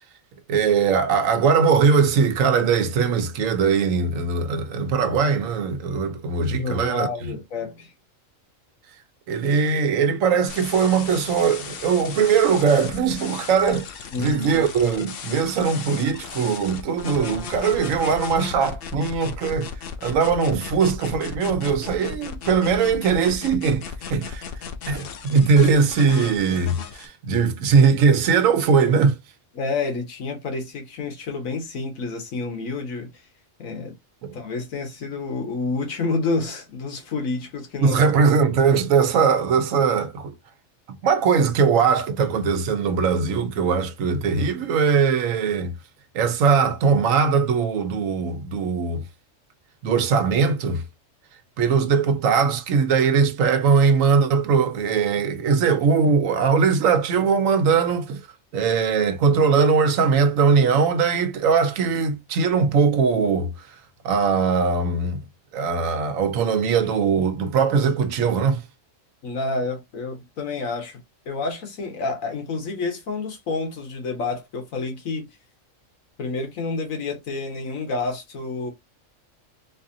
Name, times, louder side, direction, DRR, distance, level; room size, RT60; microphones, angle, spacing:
voice 1, 0.5-7.3 9.3-13.9 14.2-19.7 20.0-24.4 24.9-29.2 34.2-34.3 37.8-40.3 41.0-45.7 46.1-49.0 49.8-50.8 51.6-58.3 58.5-63.7 64.0-65.2 65.5-68.6, right 5 dB, 80° right, 1.1 m, -20 dB
voice 2, 6.4-7.9 14.1-14.6 29.5-33.2 33.6-33.9 34.3-38.0 69.2-71.0 71.2-75.3 76.2-78.7, left 3 dB, 90° left, 1.6 m, -29 dB
sound 1, 10.5-27.1, left 7 dB, 60° left, 0.7 m, -36 dB
4.0 x 2.7 x 2.6 m
omnidirectional pair, 1.4 m